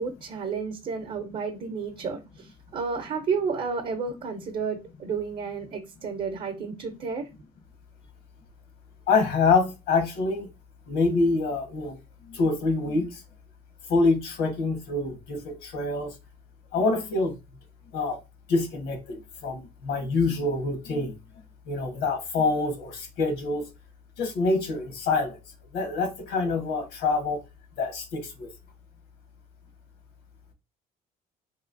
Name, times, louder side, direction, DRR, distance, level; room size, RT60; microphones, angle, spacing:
voice 1, 0.0-7.3, right 5 dB, 50° right, 0.7 m, -31 dB
voice 2, 9.1-10.5 10.9-12.0 12.3-13.2 13.9-16.1 16.7-17.3 17.9-18.2 18.5-21.1 21.7-23.6 24.2-25.4 25.7-27.4 27.8-28.5, left 3 dB, 90° left, 1.1 m, -26 dB
3.1 x 3.0 x 2.5 m
cardioid pair, 110°, 17 cm